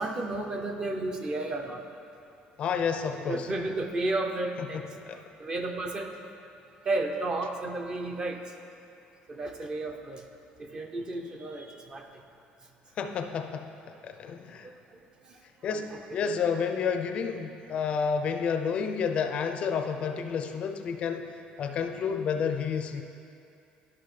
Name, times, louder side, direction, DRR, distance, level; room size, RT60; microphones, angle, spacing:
voice 1, 0.0-1.8 3.3-4.8 5.1-6.1 6.8-8.4 9.3-10.2 10.6-12.1 14.6-14.7 15.7-15.8, right 2 dB, 25° right, 4 dB, 0.6 m, -32 dB
voice 2, 2.6-3.5 4.7-5.2 13.0-13.7 14.0-14.7 15.6-23.0, left 6 dB, 40° left, 7 dB, 0.4 m, -30 dB
12.0 x 5.9 x 3.2 m, 2.6 s
cardioid pair, 150°, 3 cm